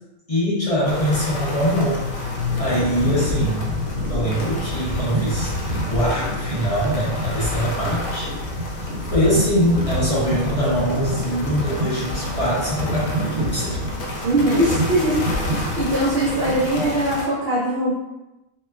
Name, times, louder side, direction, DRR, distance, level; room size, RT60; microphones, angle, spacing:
voice 1, 0.3-2.0 2.6-3.8 4.1-5.5 5.9-8.3 9.1-13.8, equal, 40° left, -8 dB, 0.5 m, -23 dB
sound 1, 0.8-17.3, left 2 dB, 75° left, 1.0 m, -30 dB
sound 2, 2.1-17.3, right 1 dB, 75° right, 1.1 m, -29 dB
voice 2, 14.2-15.2 15.5-17.9, right 1 dB, 60° right, -8 dB, 0.7 m, -21 dB
2.9 x 2.2 x 2.2 m, 0.99 s
omnidirectional pair, 1.5 m